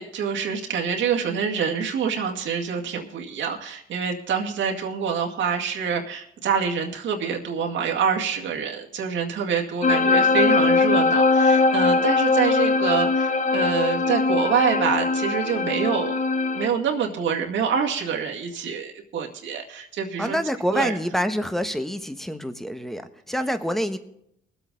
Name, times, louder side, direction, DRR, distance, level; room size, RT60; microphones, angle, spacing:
voice 1, 0.0-16.2 16.5-20.4 20.7-20.9, right 6 dB, 70° right, 1 dB, 2.1 m, -26 dB
sound 1, 9.8-16.7, left 3 dB, 40° left, 1.0 m, -21 dB
voice 2, 20.2-24.0, equal, ahead, 8 dB, 1.2 m, -26 dB
21.0 x 8.1 x 3.9 m, 0.76 s
cardioid pair, 90°, 20 cm